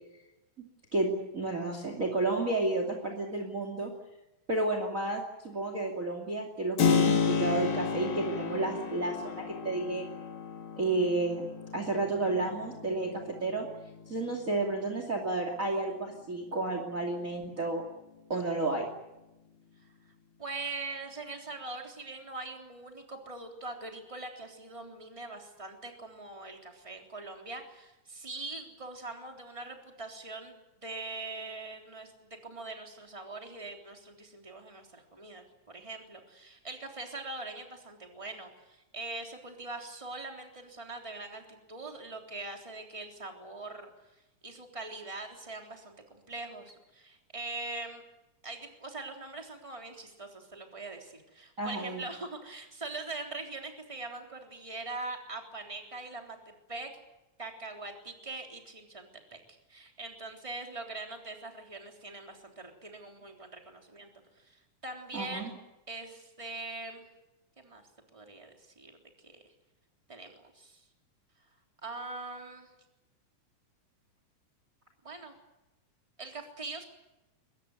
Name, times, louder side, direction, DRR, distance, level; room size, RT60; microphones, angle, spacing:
voice 1, 0.9-3.9 4.5-10.0 10.8-11.5 11.7-13.7 14.1-17.8 18.3-18.9 51.6-52.0 65.1-65.5, right 2 dB, 25° right, 4 dB, 2.9 m, -31 dB
Keyboard (musical), 6.8-15.3, left 6 dB, 45° left, 2.6 m, -32 dB
voice 2, 18.3-18.6 20.4-43.9 44.4-48.0 48.4-57.0 57.4-64.1 64.4-65.5 65.9-67.1 67.6-67.8 68.1-69.0 69.2-69.4 70.1-70.8 71.8-72.7 75.0-75.4 76.2-76.8, right 3 dB, 10° right, 2 dB, 3.4 m, -42 dB
23.0 x 20.0 x 9.3 m, 0.97 s
omnidirectional pair, 3.4 m